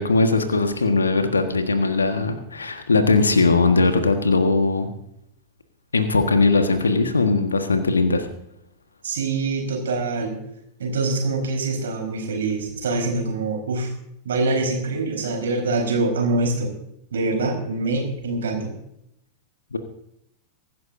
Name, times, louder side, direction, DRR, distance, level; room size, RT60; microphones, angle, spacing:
voice 1, 0.0-4.9 5.9-8.3 19.7-19.8, left 3 dB, 75° left, 7 dB, 1.5 m, -19 dB
voice 2, 9.0-10.4 10.8-13.9 14.2-16.8 17.1-18.7, right 3 dB, 65° right, 2 dB, 4.5 m, -24 dB
24.5 x 12.0 x 2.7 m, 0.78 s
figure-of-eight pair, 90°, 0 cm